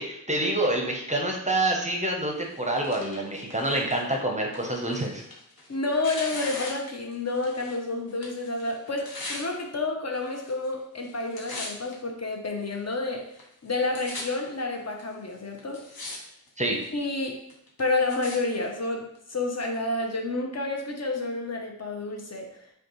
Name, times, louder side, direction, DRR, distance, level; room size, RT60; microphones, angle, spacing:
voice 1, 0.0-5.2 16.6-16.8, right 1 dB, 20° right, 0 dB, 0.7 m, -27 dB
Tearing, 2.4-7.8 8.1-9.4 10.2-10.7 11.0-11.9 12.6-12.7 13.4-13.5 13.7-14.2 15.0-15.1 15.6-16.2 16.5-16.9 17.5-18.4 19.2-19.3, left 2 dB, 60° left, 1.0 m, -40 dB
voice 2, 5.7-13.2 13.6-15.8 16.9-17.4 17.8-22.5, left 2 dB, 40° left, 1 dB, 0.7 m, -29 dB
5.0 x 2.3 x 3.0 m, 0.73 s
cardioid pair, 50°, 39 cm